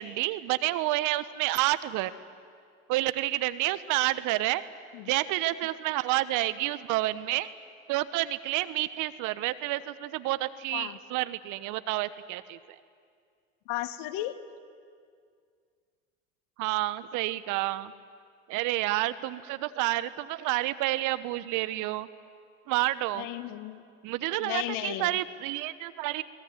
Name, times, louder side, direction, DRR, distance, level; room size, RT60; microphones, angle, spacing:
voice 1, 0.0-2.1 2.9-4.6 5.1-7.5 7.9-12.6 16.6-17.9 18.5-22.1 22.7-23.3 24.0-26.2, right 17 dB, 60° right, 14 dB, 1.2 m, -29 dB
voice 2, 13.7-14.3 23.2-23.8 24.4-25.2, left 15 dB, 65° left, 11 dB, 1.6 m, -34 dB
23.5 x 20.5 x 9.6 m, 2.2 s
hypercardioid pair, 80°, 35 cm